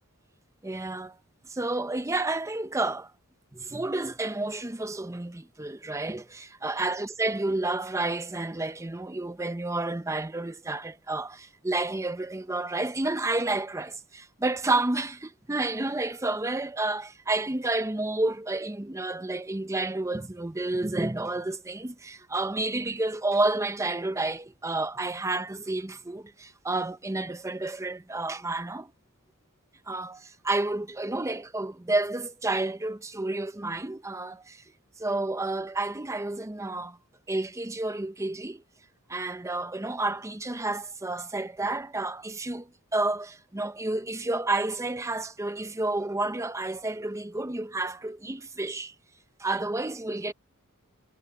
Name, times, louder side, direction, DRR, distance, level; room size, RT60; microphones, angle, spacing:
voice 1, 0.6-1.2 1.4-3.1 3.5-28.9 29.9-34.6 35.0-37.0 37.3-38.6 39.1-48.9 49.4-50.3, right 2 dB, 15° right, 0.6 m, -30 dB
head